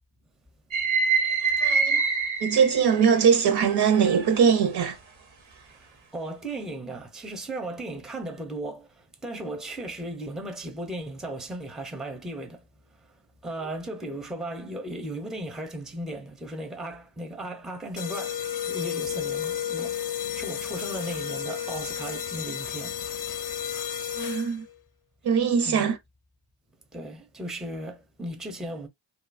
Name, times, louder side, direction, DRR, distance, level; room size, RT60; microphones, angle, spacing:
sound 1, 0.7-3.1 3.7-4.5, right 5 dB, 90° right, 0.9 m, -25 dB
voice 1, 1.6-2.0 2.4-5.0 24.2-24.7 25.2-26.0, right 7 dB, 60° right, 0.6 m, -21 dB
voice 2, 5.7-23.0 23.4-24.0 25.6-25.9 26.9-28.9, right 1 dB, ahead, 0.5 m, -36 dB
Military Alarm & Noise, 18.0-24.7, left 9 dB, 45° left, 0.5 m, -32 dB
2.6 x 2.3 x 2.5 m
cardioid pair, 65°, 46 cm